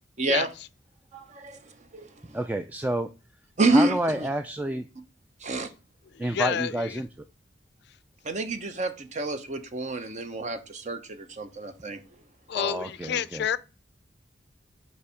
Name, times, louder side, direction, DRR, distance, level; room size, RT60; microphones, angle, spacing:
voice 1, 0.2-0.5 1.1-1.6 1.9-2.1 3.6-4.3 5.4-5.7 8.2-12.0, right 2 dB, 40° right, 0.8 m, -27 dB
voice 2, 2.3-3.1 3.7-4.9 6.2-7.1 12.5-13.4, right 1 dB, 10° right, 0.3 m, -29 dB
voice 3, 6.1-7.0 12.5-13.6, left 8 dB, 65° left, 0.4 m, -29 dB
5.6 x 4.3 x 4.9 m
head